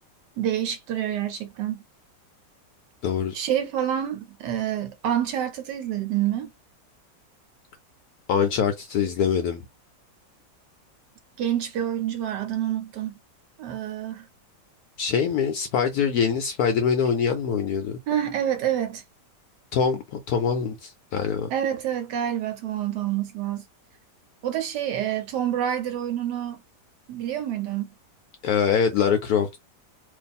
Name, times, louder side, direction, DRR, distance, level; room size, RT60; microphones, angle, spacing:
voice 1, 0.4-1.8 3.3-6.5 11.4-13.2 13.6-14.3 18.1-19.0 21.5-23.7 24.4-26.6 27.1-27.9, right 10 dB, 75° right, 1.2 m, -27 dB
voice 2, 3.0-3.4 8.3-9.6 15.0-18.0 19.7-21.5 28.4-29.6, left 7 dB, 70° left, 0.9 m, -24 dB
2.6 x 2.3 x 4.0 m
omnidirectional pair, 1.9 m